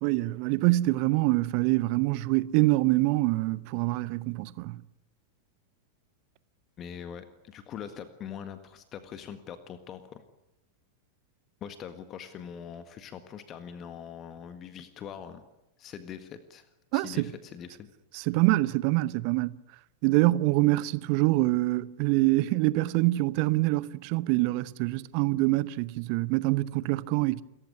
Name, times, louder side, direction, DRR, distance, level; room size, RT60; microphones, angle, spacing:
voice 1, 0.0-4.8 16.9-17.3 18.1-19.6 20.0-27.4, right 19 dB, 45° right, 0.9 m, -25 dB
voice 2, 6.8-10.2 11.6-15.4 15.8-17.9, left 8 dB, 30° left, 1.7 m, -42 dB
29.0 x 15.0 x 9.9 m
figure-of-eight pair, 90°, 0 cm